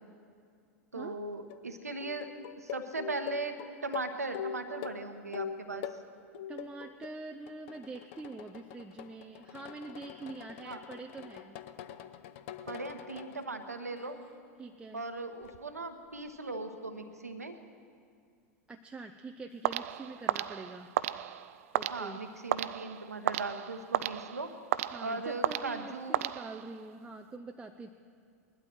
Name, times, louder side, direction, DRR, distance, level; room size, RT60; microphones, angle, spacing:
voice 1, 0.9-2.3 2.6-3.6 3.8-5.9 10.6-10.8 12.7-14.2 14.9-17.6 21.9-24.5 25.0-26.2, right 3 dB, 90° right, 7 dB, 1.1 m, -38 dB
sound 1, 1.4-1.6 2.0-6.0 6.3-7.1 7.5-13.4 14.0-14.4 15.4-15.6, left 8 dB, 55° left, 0.7 m, -43 dB
voice 2, 6.5-11.6 14.6-15.0 18.7-20.9 21.7-22.2 24.9-27.9, right 3 dB, 15° right, 4 dB, 0.6 m, -45 dB
sound 2, 19.6-26.9, right 13 dB, 65° right, 0.4 m, -34 dB
20.5 x 12.0 x 4.5 m, 2.3 s
figure-of-eight pair, 90°, 8 cm